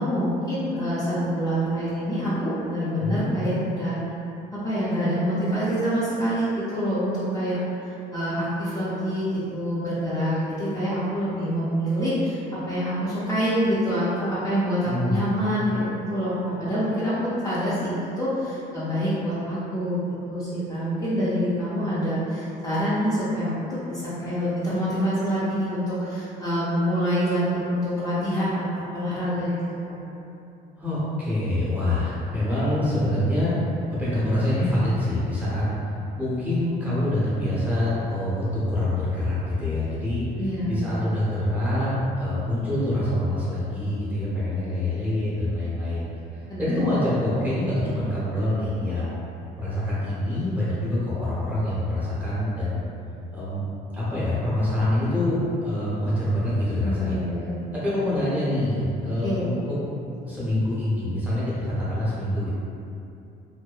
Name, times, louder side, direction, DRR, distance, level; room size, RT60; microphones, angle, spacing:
voice 1, 0.0-4.0 4.5-7.6 7.8-20.0 20.3-29.5 29.9-30.0 40.4-40.8 46.5-46.9 56.8-57.6 59.2-59.5, equal, 20° left, -12 dB, 0.5 m, -26 dB
voice 2, 3.0-3.3 14.8-15.2 30.8-33.5 33.9-35.6 36.1-40.2 40.7-41.9 42.2-46.1 46.6-49.2 49.6-52.8 53.3-53.6 53.9-57.2 57.7-59.7 60.3-62.5, left 1 dB, 10° right, -11 dB, 0.9 m, -25 dB
2.7 x 2.1 x 2.3 m, 2.8 s
cardioid pair, 110°, 17 cm